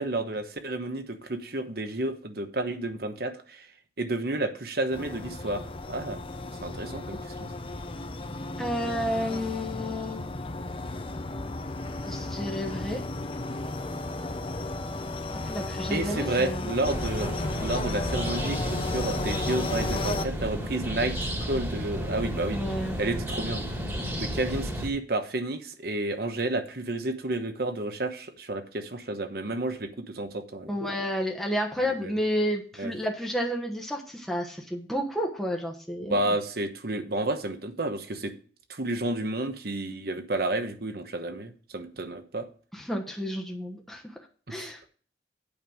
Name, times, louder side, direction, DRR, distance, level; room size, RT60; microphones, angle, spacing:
voice 1, 0.0-3.7 4.0-6.2 6.6-7.5 15.9-17.3 17.6-22.6 23.0-23.6 24.2-30.7 32.0-32.1 32.8-32.9 36.0-38.3 38.7-42.5 44.5-44.7, right 2 dB, 60° right, 8 dB, 1.2 m, -31 dB
sound 1, 4.9-20.3, left 2 dB, 30° left, 0.7 m, -34 dB
voice 2, 8.6-10.2 12.1-13.0 15.4-16.7 22.5-23.0 30.7-36.4 42.7-44.2 44.5-44.8, equal, ahead, 0 dB, 1.1 m, -31 dB
sound 2, 16.8-24.9, equal, 15° right, 1.9 m, -32 dB
8.7 x 5.4 x 6.3 m, 0.42 s
head